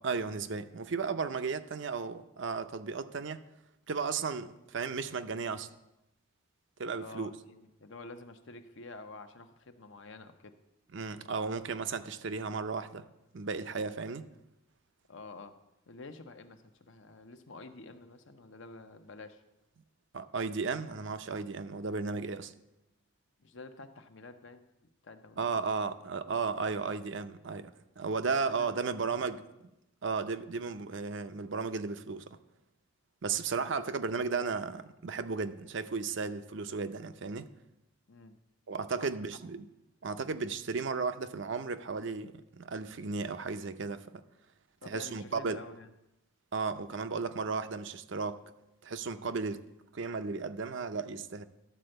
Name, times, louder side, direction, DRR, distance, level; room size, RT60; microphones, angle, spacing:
voice 1, 0.0-3.4 3.9-5.7 6.8-7.4 10.9-13.1 13.3-14.2 20.1-22.5 25.4-29.4 30.0-32.4 33.2-37.5 38.7-39.7 40.0-44.2 44.9-45.6 46.5-48.4 48.8-49.6 49.9-51.4, right 4 dB, 60° right, 0.5 m, -34 dB
voice 2, 7.0-10.5 15.1-15.5 15.9-19.4 23.4-24.7 25.0-25.5 28.5-29.2 33.5-33.7 38.1-38.4 39.0-39.1 44.8-45.9 49.2-49.4, left 3 dB, 60° left, 0.8 m, -49 dB
12.5 x 4.4 x 7.7 m
head